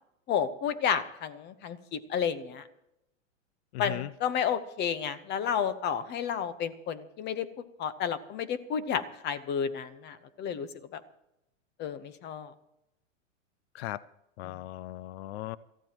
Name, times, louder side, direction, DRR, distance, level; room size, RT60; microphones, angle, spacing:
voice 1, 0.3-2.6 3.8-7.5 7.8-11.0 11.8-12.5, left 8 dB, 25° left, 14 dB, 1.0 m, -31 dB
voice 2, 3.7-4.1 13.7-14.0 14.4-15.6, left 16 dB, 55° left, 19 dB, 0.6 m, -37 dB
22.5 x 14.5 x 3.0 m, 0.84 s
hypercardioid pair, 135°, 39 cm